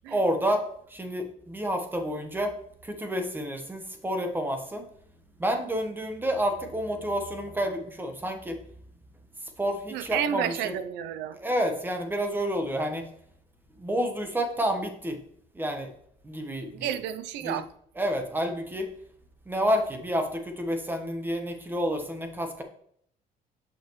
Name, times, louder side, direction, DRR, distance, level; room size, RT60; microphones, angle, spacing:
voice 1, 0.1-2.5 2.8-4.9 5.4-8.6 9.4-10.7 11.4-13.1 13.7-15.2 15.5-15.9 16.2-17.0 17.4-17.6 18.0-18.9 19.4-22.6, equal, 10° right, 5 dB, 1.2 m, -29 dB
voice 2, 9.9-11.4 16.7-17.7, right 10 dB, 90° right, 13 dB, 0.6 m, -31 dB
6.9 x 5.6 x 3.1 m, 0.65 s
cardioid pair, 110°, 17 cm